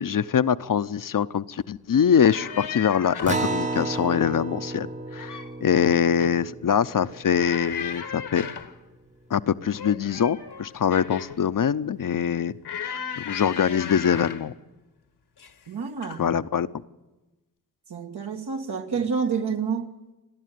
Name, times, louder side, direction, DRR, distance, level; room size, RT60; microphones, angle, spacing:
voice 1, 0.0-4.9 5.1-8.5 9.3-12.5 12.9-14.5 16.2-16.8, left 8 dB, 55° left, 0.8 m, -23 dB
sound 1, 2.1-3.5 4.9-5.6 5.9-6.4 7.3-8.8 9.7-11.4 12.6-14.5 15.4-15.7 16.0-16.2, left 7 dB, 75° left, 1.4 m, -36 dB
Acoustic guitar, 3.3-8.1, right 2 dB, 20° right, 0.9 m, -33 dB
voice 2, 15.7-16.4 17.9-19.9, right 6 dB, 75° right, 1.8 m, -28 dB
29.5 x 11.0 x 9.3 m
cardioid pair, 45°, 39 cm